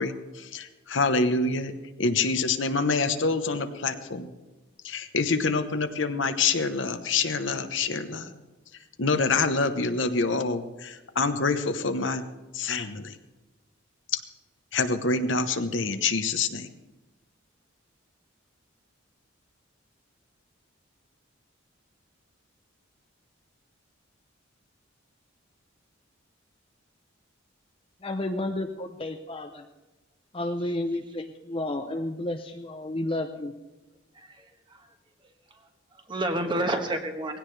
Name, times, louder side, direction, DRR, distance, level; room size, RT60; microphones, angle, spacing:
voice 1, 0.0-1.7 2.0-4.3 4.8-8.3 9.0-12.2 12.5-13.1 14.1-14.2 14.7-16.7, left 4 dB, 65° left, 8 dB, 1.0 m, -26 dB
voice 2, 28.0-29.6 30.3-33.5, left 1 dB, 30° left, 4 dB, 0.7 m, -31 dB
voice 3, 34.1-34.9 35.2-37.4, right 1 dB, 25° right, 5 dB, 1.4 m, -32 dB
19.0 x 16.5 x 3.4 m, 1.1 s
head